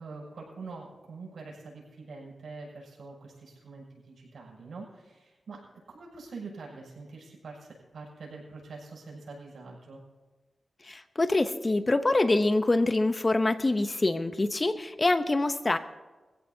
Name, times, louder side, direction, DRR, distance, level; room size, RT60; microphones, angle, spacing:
voice 1, 0.0-10.0, right 3 dB, 85° right, -3 dB, 6.5 m, -45 dB
voice 2, 10.8-15.8, left 2 dB, 30° left, 10 dB, 0.8 m, -25 dB
24.0 x 15.5 x 2.8 m, 1.2 s
wide cardioid pair, 105°, 0 cm